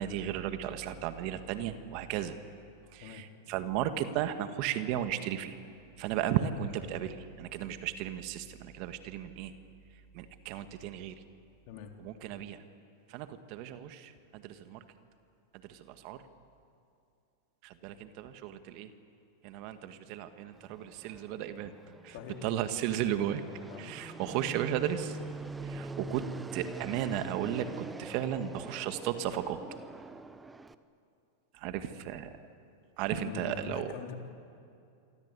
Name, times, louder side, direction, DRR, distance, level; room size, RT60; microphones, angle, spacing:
voice 1, 0.0-2.4 2.9-5.6 6.0-9.5 10.1-11.2 12.0-12.6 13.1-14.8 15.7-16.2 17.6-18.9 19.4-21.7 22.0-22.1 22.4-23.4 23.8-25.2 25.6-26.2 26.5-29.6 31.5-32.3 33.0-33.9, right 11 dB, 50° right, 9 dB, 1.9 m, -35 dB
Fixed-wing aircraft airplane, 20.5-30.7, right 3 dB, 10° right, 1.1 m, -44 dB
voice 2, 22.1-22.5 23.7-24.0 31.7-32.2 33.1-34.2, left 8 dB, 55° left, 3 dB, 3.5 m, -44 dB
27.5 x 24.0 x 8.4 m, 2.5 s
hypercardioid pair, 105°, 0 cm